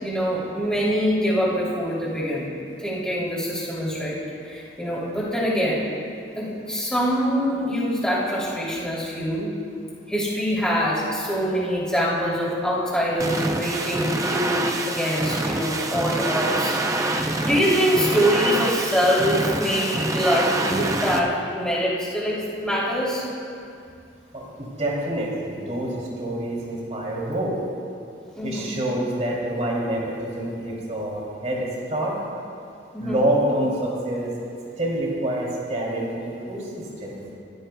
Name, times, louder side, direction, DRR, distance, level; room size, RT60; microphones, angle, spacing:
voice 1, 0.0-2.5 2.8-5.9 6.4-9.5 10.1-23.2 28.4-28.7 32.9-33.3, equal, 5° left, -7 dB, 2.9 m, -24 dB
sound 1, 13.2-21.2, right 2 dB, 15° right, 0.6 m, -26 dB
voice 2, 24.3-27.6 28.4-32.1 33.0-34.3 34.8-37.4, right 1 dB, 40° right, -4 dB, 2.9 m, -27 dB
19.0 x 14.5 x 2.3 m, 2.4 s
head